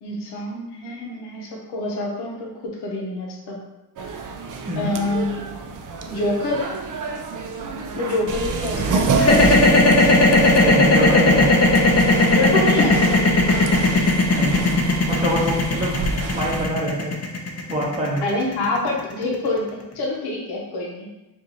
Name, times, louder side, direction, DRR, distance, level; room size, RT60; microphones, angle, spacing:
voice 1, 0.0-3.6 4.7-5.5 6.1-6.7 7.9-9.1 12.3-13.2 18.2-21.1, left 2 dB, 85° left, -1 dB, 0.8 m, -26 dB
sound 1, 4.0-16.7, right 4 dB, 55° right, 0.5 m, -28 dB
voice 2, 8.7-9.6 10.6-11.7 14.3-14.8 15.1-16.0 16.3-17.1 17.7-18.2, equal, 20° right, -6 dB, 1.0 m, -25 dB
sound 2, 9.2-19.3, left 2 dB, 40° left, 0.7 m, -16 dB
2.8 x 2.6 x 3.8 m, 1.0 s
cardioid pair, 70°, 39 cm